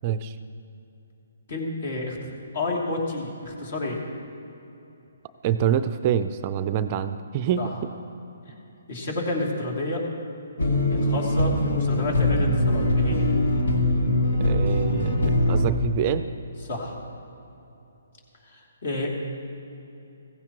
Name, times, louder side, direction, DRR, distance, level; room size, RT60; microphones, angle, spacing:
voice 1, 0.0-0.4 5.4-7.7 14.4-16.2, right 9 dB, 30° right, 11 dB, 0.4 m, -26 dB
voice 2, 1.5-4.0 7.6-7.7 8.5-8.6 8.9-10.0 10.9-13.2 16.6-16.9 18.5-19.1, left 2 dB, 55° left, -1 dB, 2.8 m, -30 dB
sound 1, 10.6-15.7, left 1 dB, 80° left, 1.6 m, -22 dB
16.0 x 15.0 x 3.1 m, 2.9 s
hypercardioid pair, 155°, 0 cm